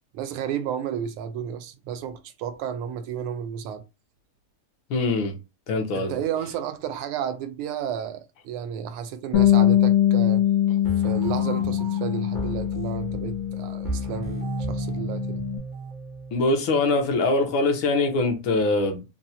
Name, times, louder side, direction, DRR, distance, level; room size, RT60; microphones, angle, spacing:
voice 1, 0.1-3.8 5.9-10.5 11.0-15.4, right 8 dB, 85° right, 1.5 m, -32 dB
voice 2, 4.9-5.4 5.7-6.2 16.3-19.0, left 2 dB, 70° left, 1.5 m, -23 dB
Bass guitar, 9.3-15.6, left 12 dB, 90° left, 1.7 m, -23 dB
sound 1, 10.8-16.9, right 2 dB, 50° left, 0.6 m, -34 dB
4.2 x 2.0 x 2.6 m
omnidirectional pair, 2.4 m